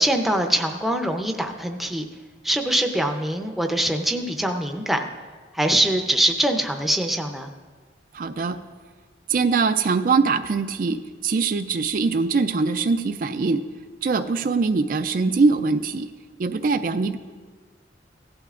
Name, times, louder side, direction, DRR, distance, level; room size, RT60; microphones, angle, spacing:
voice 1, 0.0-2.0 2.4-5.1 5.5-7.5, right 1 dB, ahead, 3 dB, 0.6 m, -23 dB
voice 2, 8.1-8.6 9.3-13.6 14.0-16.1 16.4-17.2, right 4 dB, 50° right, 9 dB, 0.4 m, -22 dB
16.5 x 11.5 x 2.5 m, 1.5 s
head